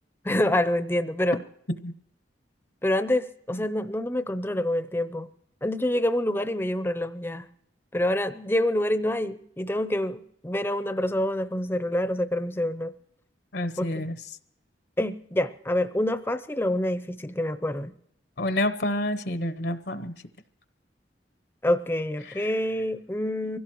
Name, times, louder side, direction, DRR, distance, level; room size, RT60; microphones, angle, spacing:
voice 1, 0.2-1.4 2.8-5.3 5.6-7.5 7.9-12.9 13.8-14.0 15.0-17.9 21.6-23.6, left 1 dB, 10° left, 12 dB, 0.6 m, -27 dB
voice 2, 13.5-14.2 18.4-20.1 22.2-22.5, left 1 dB, 65° left, 13 dB, 0.8 m, -29 dB
24.0 x 16.5 x 3.1 m, 0.70 s
head